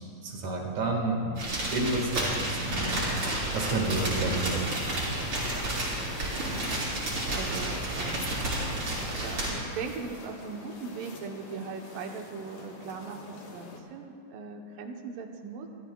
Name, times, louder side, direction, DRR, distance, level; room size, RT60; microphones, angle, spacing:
voice 1, 0.0-3.0 3.5-5.3, right 2 dB, 60° right, 0 dB, 3.0 m, -31 dB
sound 1, 1.4-9.5, right 1 dB, 40° right, 5.0 m, -31 dB
sound 2, 3.9-13.8, left 3 dB, 55° left, 1.3 m, -45 dB
voice 2, 7.3-8.4 9.0-13.2 13.5-15.7, right 5 dB, 80° right, 3 dB, 2.6 m, -40 dB
26.5 x 15.0 x 2.3 m, 2.5 s
omnidirectional pair, 3.9 m